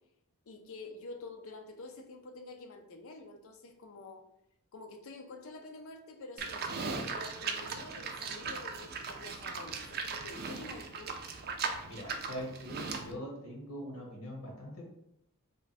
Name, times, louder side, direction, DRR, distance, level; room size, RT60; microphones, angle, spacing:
voice 1, 0.5-4.2 4.7-11.2, left 2 dB, 65° left, 6 dB, 0.5 m, -48 dB
Livestock farm animals working animals, 6.4-13.1, right 4 dB, 45° right, 0.4 m, -38 dB
voice 2, 11.8-14.9, equal, 85° left, -2 dB, 1.2 m, -42 dB
3.5 x 2.2 x 4.1 m, 0.79 s
head